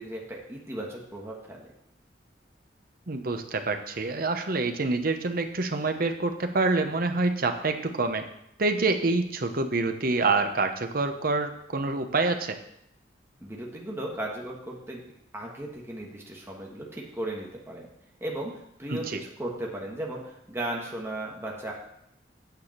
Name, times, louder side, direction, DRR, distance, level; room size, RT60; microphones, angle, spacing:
voice 1, 0.0-1.7 13.4-15.0 15.3-17.9 18.2-21.7, right 1 dB, 15° right, -2 dB, 1.4 m, -36 dB
voice 2, 3.1-8.2 8.6-12.6 18.9-19.2, right 3 dB, 55° right, 6 dB, 0.9 m, -27 dB
9.2 x 4.9 x 7.3 m, 0.77 s
head